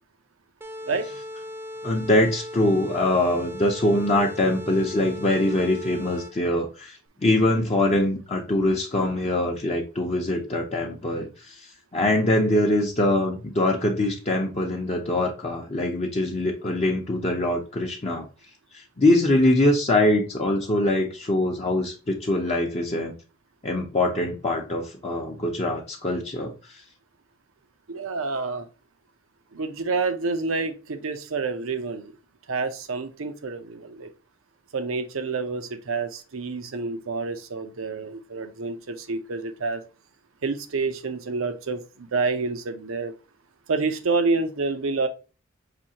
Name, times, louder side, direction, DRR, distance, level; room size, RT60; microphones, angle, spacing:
sound 1, 0.6-6.5, left 1 dB, 10° right, 0.3 m, -38 dB
voice 1, 1.8-18.3 18.7-23.1 23.6-26.8, left 1 dB, 30° left, 0.6 m, -23 dB
voice 2, 27.9-28.7 29.5-32.1 32.5-34.1 34.7-39.8 40.4-43.1 43.7-45.1, right 4 dB, 75° right, 0.6 m, -28 dB
5.9 x 2.7 x 2.7 m
head